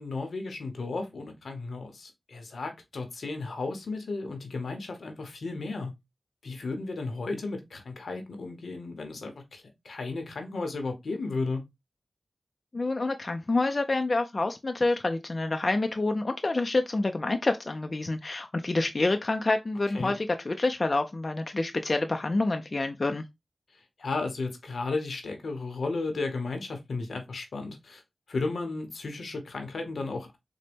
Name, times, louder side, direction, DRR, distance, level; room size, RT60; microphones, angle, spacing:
voice 1, 0.0-5.9 6.4-11.6 19.9-20.2 24.0-28.0 28.3-30.4, left 3 dB, 85° left, 0.8 m, -34 dB
voice 2, 12.7-23.2, left 2 dB, 50° left, 0.4 m, -27 dB
3.9 x 2.1 x 3.3 m
cardioid pair, 40°, 0 cm